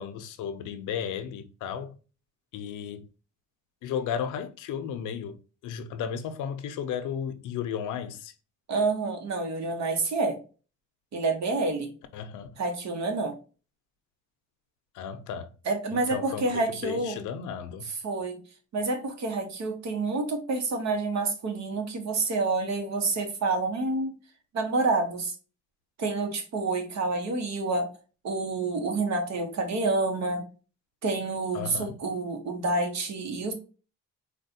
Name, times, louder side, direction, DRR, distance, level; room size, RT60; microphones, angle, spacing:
voice 1, 0.0-1.9 2.5-3.0 3.8-5.4 5.6-8.3 12.1-12.5 14.9-15.5 15.9-17.9 31.5-32.0, left 8 dB, 85° left, 0.6 m, -34 dB
voice 2, 8.7-10.4 11.1-11.9 12.6-13.4 15.7-17.2 18.0-18.4 18.7-24.1 24.5-25.3 26.0-27.9 28.2-30.4 31.0-33.5, right 3 dB, 65° right, 1.2 m, -28 dB
4.2 x 2.3 x 2.6 m
cardioid pair, 90°, 30 cm